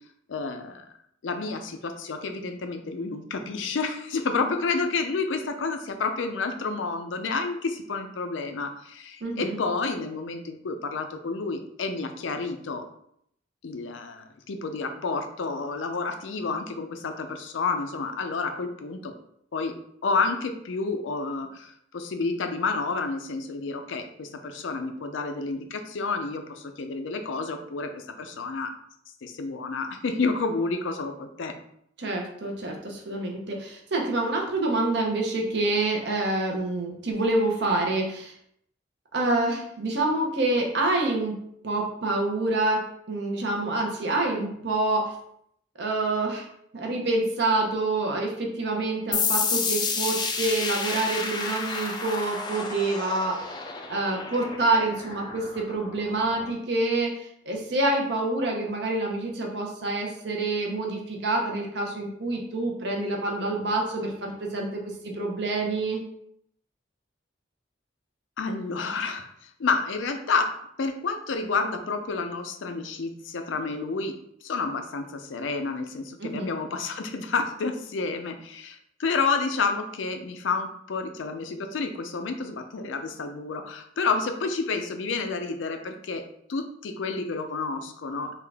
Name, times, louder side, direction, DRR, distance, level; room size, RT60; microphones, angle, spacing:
voice 1, 0.3-0.8 1.2-12.8 13.6-19.1 19.5-19.8 20.0-28.7 29.2-31.5 68.4-74.1 74.4-86.2 86.5-88.3, left 4 dB, 80° left, 6 dB, 0.5 m, -30 dB
voice 2, 9.2-9.6 32.0-38.3 39.1-41.4 41.6-45.1 45.8-46.5 46.7-53.4 53.9-66.0 76.2-76.5, right 2 dB, 60° right, 0 dB, 0.8 m, -27 dB
sound 1, 49.1-56.5, left 5 dB, 20° left, 0.3 m, -30 dB
3.6 x 2.4 x 3.4 m, 0.71 s
head